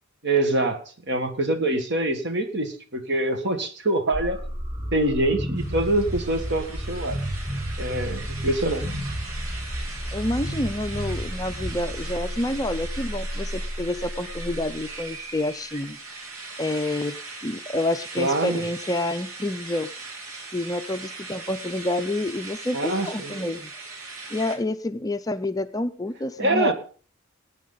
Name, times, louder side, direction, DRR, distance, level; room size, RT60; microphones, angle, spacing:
voice 1, 0.2-0.8 1.1-4.4 4.9-7.2 7.8-8.9 18.2-18.6 22.7-23.4 26.4-26.7, right 2 dB, 55° right, 7 dB, 1.8 m, -24 dB
sound 1, 4.1-15.0, equal, 20° right, 3.5 m, -32 dB
sound 2, 5.6-24.6, right 3 dB, 85° right, 3.0 m, -39 dB
voice 2, 10.1-16.0 16.6-19.9 20.5-23.7 24.3-26.7, left 1 dB, 15° left, 9 dB, 0.5 m, -28 dB
18.5 x 9.4 x 3.9 m, 0.40 s
head